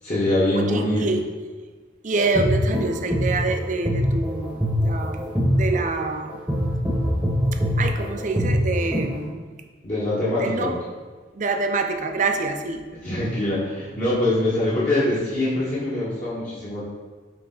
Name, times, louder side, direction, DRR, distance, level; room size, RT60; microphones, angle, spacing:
voice 1, 0.0-1.0 9.8-10.7 13.0-16.8, left 1 dB, 40° left, -10 dB, 1.4 m, -23 dB
voice 2, 0.5-1.2 2.0-6.4 7.8-9.4 10.4-10.8 11.3-12.8 13.4-13.5, right 3 dB, 40° right, 5 dB, 0.5 m, -26 dB
sound 1, 2.2-9.2, equal, 5° right, 0.9 m, -23 dB
8.6 x 3.4 x 3.9 m, 1.4 s
head